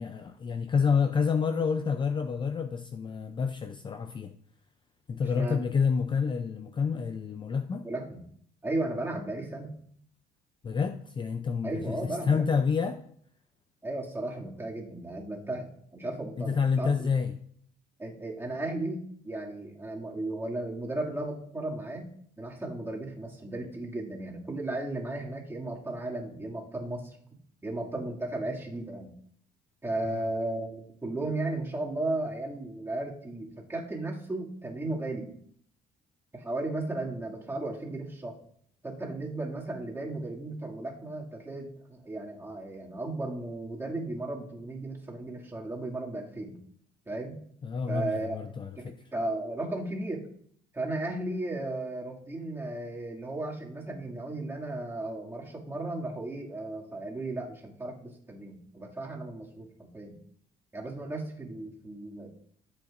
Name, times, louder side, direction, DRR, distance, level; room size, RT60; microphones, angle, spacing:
voice 1, 0.0-4.3 5.1-7.9 10.6-13.0 16.4-17.3 47.6-49.0, left 6 dB, 30° left, 0.5 m, -28 dB
voice 2, 7.8-8.2 8.6-9.7 11.6-12.4 13.8-17.1 18.0-22.1 22.4-27.2 27.6-29.1 29.8-35.3 36.3-38.3 38.8-46.6 47.1-47.4 47.9-48.4 48.8-50.2 50.7-59.7 59.9-60.1 60.7-62.3, right 2 dB, 15° right, 2.4 m, -35 dB
13.5 x 7.9 x 2.6 m
cardioid pair, 110°, 17 cm